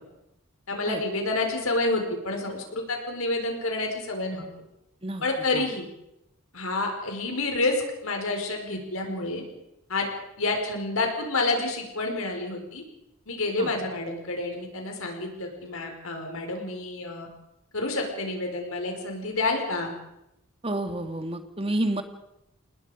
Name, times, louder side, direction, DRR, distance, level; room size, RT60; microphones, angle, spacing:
voice 1, 0.7-4.5 5.2-5.9 6.5-9.4 9.9-10.1 10.4-12.8 13.3-17.3 17.7-19.9, left 2 dB, 80° left, 3 dB, 5.1 m, -29 dB
voice 2, 20.6-22.0, right 1 dB, 25° right, 7 dB, 1.8 m, -29 dB
27.5 x 19.5 x 5.2 m, 0.85 s
head